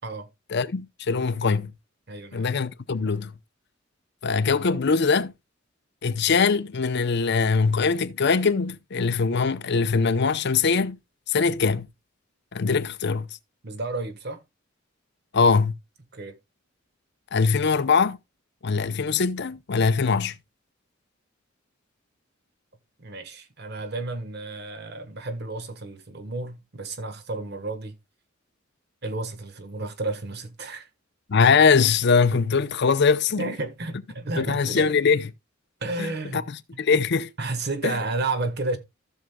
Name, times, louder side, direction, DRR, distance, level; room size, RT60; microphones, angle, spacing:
voice 1, 0.5-1.7 2.3-3.3 4.2-5.3 6.0-11.0 11.3-11.9 12.5-13.3 15.3-15.8 17.3-18.2 18.6-20.4 31.3-33.5 34.4-35.3 36.0-37.3 37.8-37.9, left 5 dB, 60° left, 0.6 m, -22 dB
voice 2, 2.1-2.5 13.6-14.4 16.1-16.4 23.0-28.0 29.0-30.9 33.4-34.9 35.8-36.5 37.4-38.8, right 2 dB, 55° right, 1.3 m, -32 dB
15.5 x 6.3 x 2.2 m
head